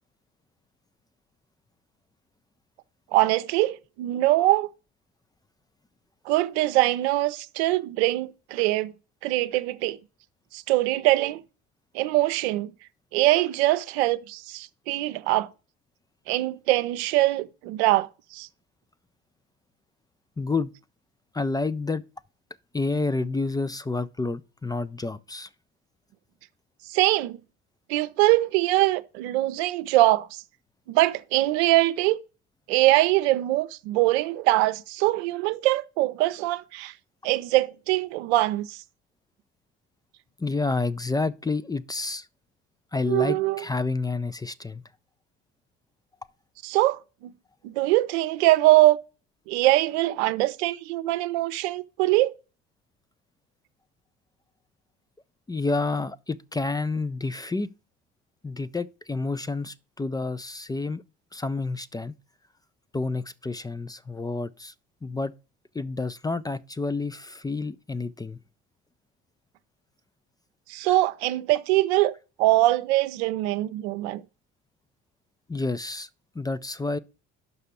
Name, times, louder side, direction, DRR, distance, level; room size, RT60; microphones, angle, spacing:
voice 1, 3.1-4.7 6.3-8.9 9.2-10.0 10.5-11.4 11.9-12.7 13.1-15.5 16.3-18.5 26.9-27.4 27.9-30.4 30.9-32.2 32.7-36.9 37.2-38.8 43.1-43.6 46.6-47.3 47.6-49.0 49.5-52.3 70.7-72.1 72.4-74.2, right 17 dB, 80° right, 0.6 m, -23 dB
voice 2, 20.4-20.7 21.3-22.0 22.7-25.5 40.4-42.3 42.9-44.8 55.5-57.7 58.4-61.0 61.3-62.1 62.9-64.7 65.0-65.3 65.7-68.4 75.5-76.1 76.3-77.0, left 3 dB, 10° left, 0.4 m, -29 dB
5.8 x 5.4 x 6.7 m
hypercardioid pair, 65°, 32 cm